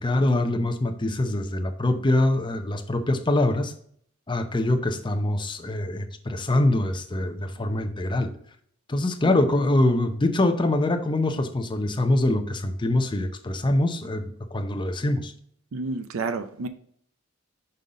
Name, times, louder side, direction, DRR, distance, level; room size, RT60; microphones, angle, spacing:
voice 1, 0.0-3.7 4.3-8.3 8.9-14.3 14.5-15.3, left 1 dB, 20° left, 7 dB, 0.6 m, -24 dB
voice 2, 15.7-16.7, right 3 dB, 70° right, 9 dB, 0.5 m, -30 dB
5.5 x 5.4 x 3.7 m, 0.64 s
head